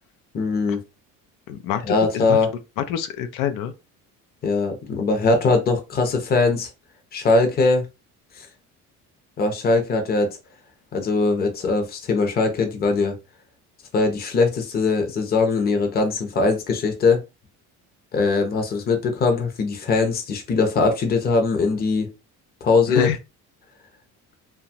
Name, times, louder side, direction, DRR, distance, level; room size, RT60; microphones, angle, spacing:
voice 1, 0.3-0.8 1.8-2.5 4.4-6.7 7.1-7.9 8.4-8.5 9.4-10.4 10.9-13.2 13.9-17.2 18.1-22.1 22.6-23.1, left 3 dB, 30° left, 0.6 m, -21 dB
voice 2, 1.5-2.4 2.8-3.7 22.9-23.2, left 10 dB, 85° left, 0.5 m, -26 dB
2.9 x 2.3 x 2.7 m
cardioid pair, 150°, 32 cm